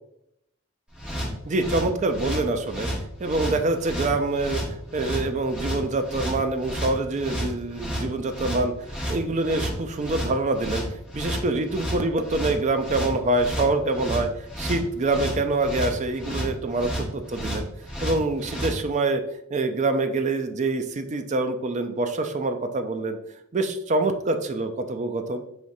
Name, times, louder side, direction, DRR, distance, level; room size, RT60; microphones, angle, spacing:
sound 1, 0.9-18.8, equal, 5° right, 1.0 m, -31 dB
voice 1, 1.5-2.9 3.2-4.6 4.9-8.7 9.1-10.8 11.1-17.7 18.0-19.2 19.5-23.2 23.5-25.4, right 2 dB, 35° right, 7 dB, 0.4 m, -25 dB
5.0 x 3.0 x 2.6 m, 0.79 s
head